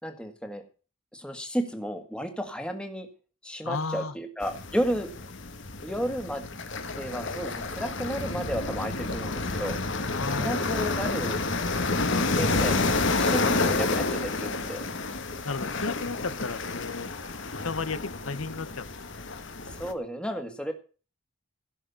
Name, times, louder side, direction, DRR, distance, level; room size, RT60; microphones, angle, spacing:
voice 1, 0.0-0.6 1.1-3.1 3.4-5.1 5.8-6.5 7.0-9.8 10.3-11.4 11.7-11.8 12.1-12.9 13.2-14.9 19.7-20.7, equal, 5° left, 6 dB, 1.8 m, -32 dB
voice 2, 3.6-4.1 10.1-10.6 12.0-12.3 13.5-13.7 15.4-17.1 17.6-18.9, left 4 dB, 90° left, 14 dB, 1.2 m, -33 dB
sound 1, 4.4-19.9, left 3 dB, 60° left, 1.6 m, -29 dB
15.5 x 6.5 x 7.0 m, 0.36 s
head